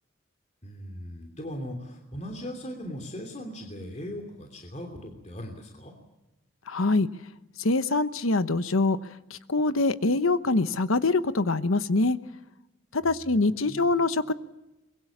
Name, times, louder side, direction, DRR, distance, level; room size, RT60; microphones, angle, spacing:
voice 1, 0.6-5.9 13.0-13.9, equal, 35° left, 2 dB, 3.1 m, -39 dB
voice 2, 6.7-7.1 7.6-9.0 9.3-12.2 12.9-14.3, left 3 dB, 85° left, 12 dB, 1.1 m, -24 dB
23.5 x 23.0 x 7.3 m, 0.98 s
head